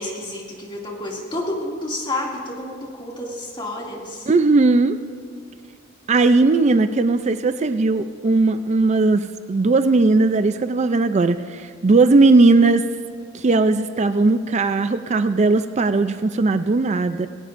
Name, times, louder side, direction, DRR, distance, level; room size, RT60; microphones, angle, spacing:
voice 1, 0.0-4.3, left 1 dB, 25° left, -2 dB, 2.4 m, -30 dB
voice 2, 4.3-5.0 6.1-12.9 13.3-17.3, right 3 dB, 35° right, 11 dB, 0.4 m, -18 dB
21.0 x 17.5 x 2.6 m, 2.1 s
head